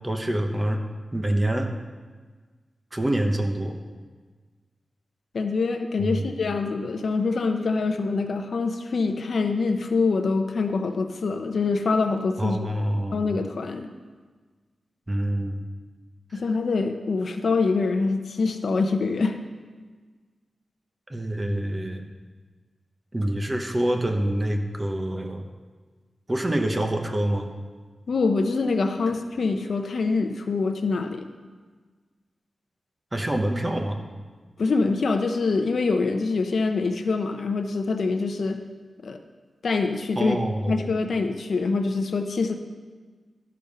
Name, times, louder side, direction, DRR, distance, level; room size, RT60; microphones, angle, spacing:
voice 1, 0.0-0.8 1.1-1.7 2.9-3.8 6.0-6.3 12.4-13.3 15.1-15.6 16.3-16.4 21.1-22.0 23.1-25.5 26.3-27.5 33.1-34.0 40.1-40.9, right 1 dB, 25° right, 4 dB, 1.0 m, -26 dB
voice 2, 5.3-12.6 13.1-13.9 16.3-19.4 28.1-31.2 34.6-38.6 39.0-39.2 39.6-40.4 40.7-42.5, left 4 dB, 70° left, 6 dB, 0.7 m, -25 dB
12.5 x 5.3 x 5.4 m, 1.4 s
wide cardioid pair, 90°, 0 cm